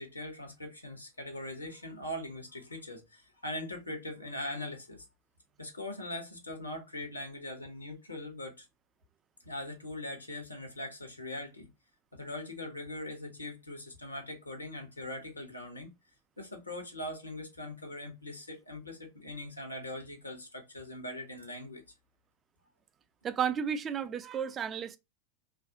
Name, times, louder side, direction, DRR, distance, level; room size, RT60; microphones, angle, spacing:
voice 1, 0.0-5.0 5.6-8.7 9.4-11.7 12.1-15.9 16.4-21.8, left 1 dB, 85° left, 0.8 m, -41 dB
voice 2, 23.2-25.0, right 7 dB, 25° right, 0.3 m, -32 dB
2.6 x 2.4 x 3.6 m
figure-of-eight pair, 90°, 0 cm